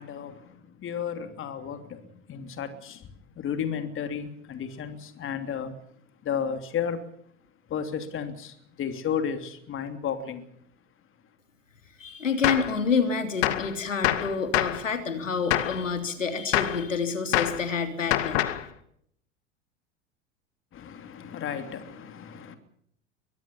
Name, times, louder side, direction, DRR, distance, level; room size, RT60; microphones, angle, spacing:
voice 1, 0.0-5.7 6.2-7.1 7.7-10.4 20.7-22.6, left 7 dB, 35° left, 3.1 m, -33 dB
voice 2, 12.0-18.5, left 5 dB, 85° left, 3.4 m, -28 dB
Gunshot gunfire, 12.4-12.7 13.4-13.7 14.0-14.8 15.5-15.8 16.5-16.8 17.3-17.6 18.1-18.7, left 15 dB, 60° left, 2.2 m, -25 dB
23.5 x 20.0 x 7.1 m
figure-of-eight pair, 80°, 37 cm